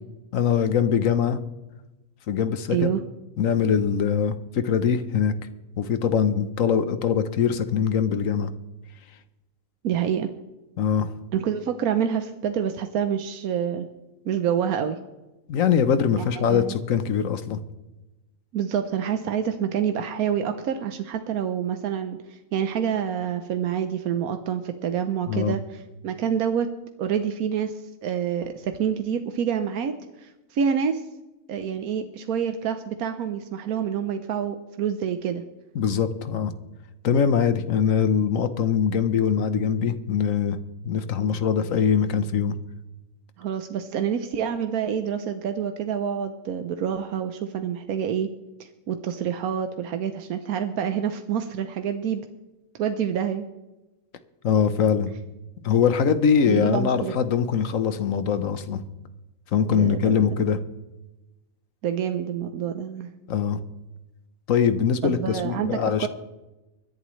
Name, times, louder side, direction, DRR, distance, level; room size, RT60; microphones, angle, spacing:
voice 1, 0.3-1.4 2.3-2.9 3.4-5.3 5.8-8.5 10.8-11.1 15.5-17.6 25.3-25.6 35.7-36.5 37.0-40.6 40.8-42.5 54.4-55.1 55.6-58.8 59.5-60.6 63.3-63.6 64.5-66.1, left 7 dB, 70° left, 11 dB, 1.3 m, -22 dB
voice 2, 2.7-3.0 9.8-10.3 11.3-13.9 14.2-15.0 16.2-16.7 18.5-26.7 27.0-31.0 31.5-35.4 43.4-48.3 48.6-52.2 52.8-53.4 56.5-57.1 59.7-60.4 61.8-63.1 65.0-66.1, right 8 dB, 90° right, 8 dB, 1.3 m, -27 dB
24.5 x 11.0 x 3.2 m, 1.0 s
omnidirectional pair, 1.5 m